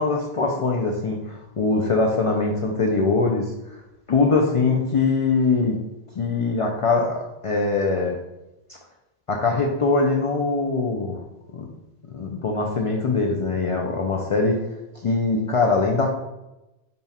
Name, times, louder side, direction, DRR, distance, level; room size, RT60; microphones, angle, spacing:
voice 1, 0.0-3.8 4.1-5.8 6.1-8.2 8.7-8.8 9.3-11.2 11.5-11.7 12.1-14.6 14.9-16.1, left 3 dB, 50° left, 0 dB, 0.4 m, -22 dB
5.3 x 2.4 x 4.1 m, 0.98 s
omnidirectional pair, 1.1 m